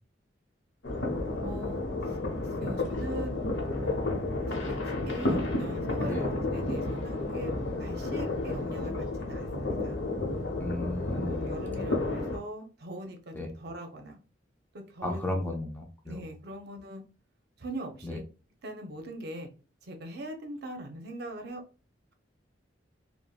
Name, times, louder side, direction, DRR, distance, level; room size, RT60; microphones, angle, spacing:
sound 1, 0.8-12.4, left 2 dB, 85° left, 0.8 m, -31 dB
voice 1, 1.4-2.2 2.6-3.3 3.8-4.1 4.5-7.5 7.8-10.0 11.3-14.2 14.7-15.6 16.0-17.0 17.6-18.2 18.6-19.5 19.8-21.6, right 1 dB, 60° right, 4 dB, 0.6 m, -41 dB
voice 2, 10.6-11.5 13.4-13.5 15.0-16.2 18.0-18.2, left 1 dB, 10° left, 1 dB, 0.5 m, -34 dB
3.3 x 2.1 x 2.3 m, 0.33 s
head